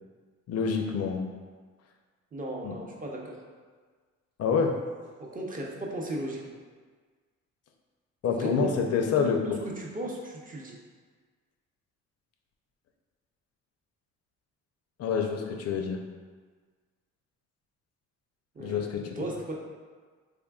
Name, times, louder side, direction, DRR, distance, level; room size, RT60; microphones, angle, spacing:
voice 1, 0.5-1.2 2.6-2.7 4.4-4.8 8.2-9.6 15.0-16.0 18.6-19.2, left 6 dB, 55° left, 4 dB, 0.5 m, -27 dB
voice 2, 2.3-3.4 5.2-6.6 8.3-8.7 9.2-10.8 18.5-18.8 19.1-19.6, right 1 dB, 30° right, -1 dB, 0.6 m, -36 dB
3.6 x 3.3 x 2.3 m, 1.5 s
cardioid pair, 90°, 30 cm